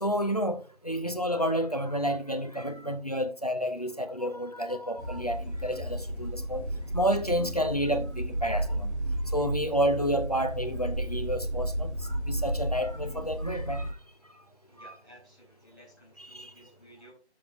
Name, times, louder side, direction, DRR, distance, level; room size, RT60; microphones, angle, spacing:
voice 1, 0.0-6.6 6.9-8.9 9.3-13.9 14.8-15.0 16.2-16.5, equal, 35° left, 0.8 m, -30 dB
sound 1, 5.0-13.9, right 1 dB, 85° right, 2.7 m, -33 dB
voice 2, 14.7-17.1, right 1 dB, 20° right, 5.0 m, -55 dB
13.0 x 7.1 x 2.4 m
figure-of-eight pair, 175°, 34 cm